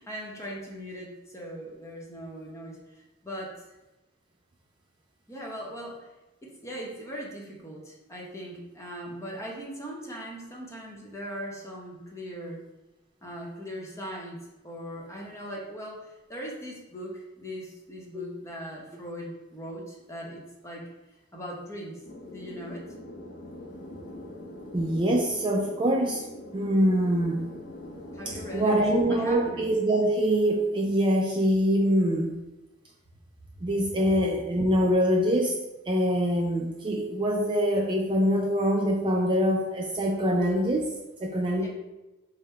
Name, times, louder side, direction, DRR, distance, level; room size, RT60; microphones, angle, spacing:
voice 1, 0.0-3.5 5.3-6.1 6.4-12.6 13.2-14.4 14.6-20.8 21.3-22.0 22.3-22.8 28.1-28.8 29.1-29.6 41.6-41.7, equal, 15° left, -3 dB, 0.8 m, -39 dB
sound 1, 22.0-29.7, left 1 dB, 50° left, 0.6 m, -42 dB
voice 2, 24.7-26.3 26.5-27.5 28.3-32.4 33.6-35.5 35.9-40.9 41.2-41.7, equal, 25° right, 0 dB, 0.3 m, -24 dB
5.4 x 2.1 x 4.4 m, 1.0 s
head